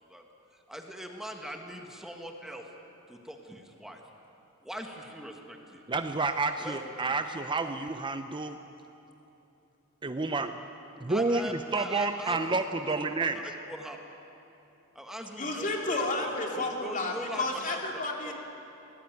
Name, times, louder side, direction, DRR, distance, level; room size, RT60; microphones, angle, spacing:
voice 1, 0.5-2.7 3.1-4.0 4.6-5.8 6.6-7.1 11.1-12.4 13.3-14.0 14.9-17.8 18.2-18.3, equal, ahead, 2 dB, 1.7 m, -42 dB
voice 2, 5.9-8.6 10.0-10.6 11.0-13.4, right 3 dB, 25° right, 8 dB, 0.7 m, -30 dB
voice 3, 15.4-18.3, left 2 dB, 40° left, 1 dB, 2.8 m, -31 dB
22.5 x 19.0 x 9.2 m, 3.0 s
head